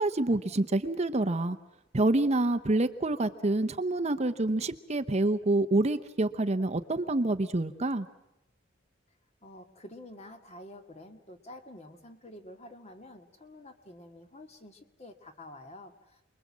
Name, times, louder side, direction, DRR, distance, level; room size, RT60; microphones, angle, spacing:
voice 1, 0.0-1.6 1.9-8.1, right 2 dB, 35° right, 10 dB, 0.8 m, -27 dB
voice 2, 9.4-16.2, left 1 dB, 35° left, 6 dB, 2.0 m, -49 dB
29.0 x 22.0 x 7.4 m, 0.91 s
head